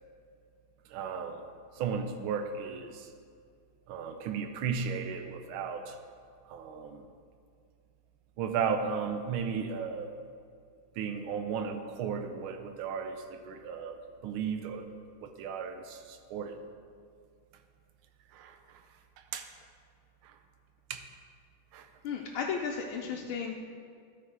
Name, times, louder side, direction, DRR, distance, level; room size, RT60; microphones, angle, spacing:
voice 1, 0.9-1.4 1.8-2.9 3.9-5.9 6.5-7.0 8.4-10.1 11.0-13.9 14.2-14.8 15.4-16.0 16.3-16.5 18.4-18.5 19.3-19.4 20.9-21.0 21.7-21.8, right 6 dB, 75° right, 6 dB, 1.5 m, -34 dB
voice 2, 22.0-23.5, left 6 dB, 75° left, -1 dB, 1.4 m, -34 dB
13.0 x 4.8 x 4.6 m, 2.2 s
omnidirectional pair, 2.4 m